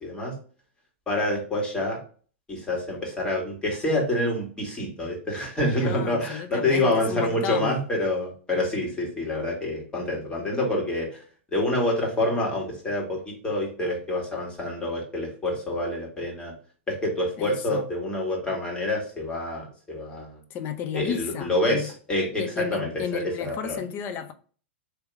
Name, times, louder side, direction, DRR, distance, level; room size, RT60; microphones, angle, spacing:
voice 1, 0.0-0.3 1.1-2.0 2.5-11.2 11.5-16.5 16.9-20.4 20.9-23.8, left 1 dB, 15° left, 2.0 m, -27 dB
voice 2, 5.7-7.8 17.4-17.8 20.5-21.9 22.4-24.3, left 8 dB, 35° left, 0.6 m, -33 dB
3.5 x 2.9 x 4.6 m
hypercardioid pair, 120°, 7 cm